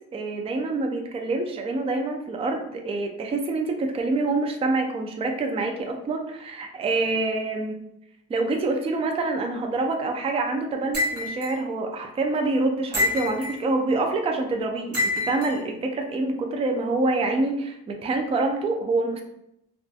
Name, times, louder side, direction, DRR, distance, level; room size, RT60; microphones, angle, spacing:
voice 1, 0.1-7.7 8.3-19.2, right 3 dB, 20° right, 4 dB, 0.3 m, -26 dB
sound 1, 10.9-11.5 12.9-13.6 14.9-15.5, left 2 dB, 35° right, 0.9 m, -26 dB
2.5 x 2.4 x 2.3 m, 0.80 s
cardioid pair, 90°, 30 cm